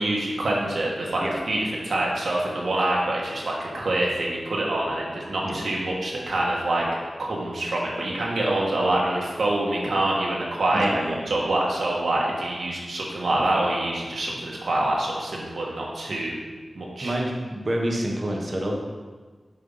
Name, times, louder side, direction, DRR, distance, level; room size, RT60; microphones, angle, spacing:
voice 1, 0.0-6.9 7.2-10.9 11.3-16.4 16.7-17.2, right 1 dB, 80° right, -3 dB, 1.6 m, -26 dB
voice 2, 10.7-11.4 17.0-18.7, right 1 dB, 40° right, -1 dB, 1.3 m, -27 dB
7.6 x 4.7 x 5.6 m, 1.4 s
wide cardioid pair, 85°, 0 cm